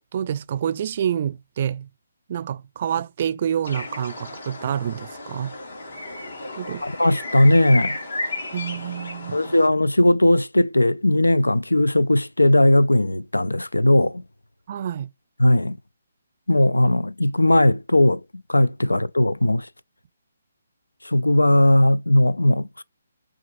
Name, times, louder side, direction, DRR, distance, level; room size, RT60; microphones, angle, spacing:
voice 1, 0.1-1.9 2.3-5.5 6.6-6.8 8.5-9.4 14.7-15.1, right 9 dB, 45° right, 0.4 m, -27 dB
sound 1, 3.6-9.7, left 2 dB, 65° left, 1.8 m, -33 dB
voice 2, 6.8-8.0 9.3-14.2 15.4-15.8 16.5-19.7 21.0-22.8, left 1 dB, 90° left, 0.3 m, -18 dB
6.0 x 2.4 x 2.5 m
figure-of-eight pair, 140°, 0 cm